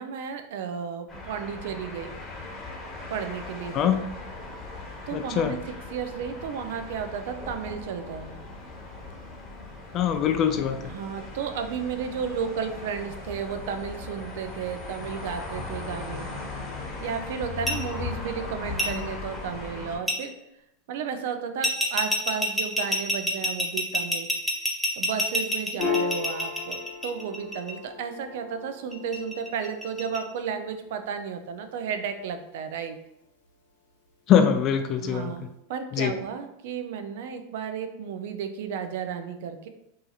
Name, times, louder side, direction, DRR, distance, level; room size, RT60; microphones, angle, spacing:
voice 1, 0.0-2.1 3.1-3.9 5.1-5.6 5.9-8.4 10.9-16.3 17.0-20.3 20.9-24.3 25.0-33.0 35.0-39.7, right 7 dB, 70° right, 7 dB, 0.3 m, -33 dB
sound 1, 1.1-20.0, left 3 dB, 25° left, 1.0 m, -38 dB
voice 2, 3.7-4.1 5.1-5.5 9.9-10.8 34.3-35.3 35.9-36.1, left 8 dB, 40° left, 8 dB, 0.3 m, -23 dB
sound 2, 17.7-17.8 18.8-18.9 20.1-20.2 21.6-27.7 28.9-30.2, equal, 5° left, 0.7 m, -26 dB
Piano, 25.8-32.7, left 5 dB, 85° left, 0.9 m, -36 dB
2.7 x 2.7 x 2.3 m, 0.83 s
hypercardioid pair, 110°, 0 cm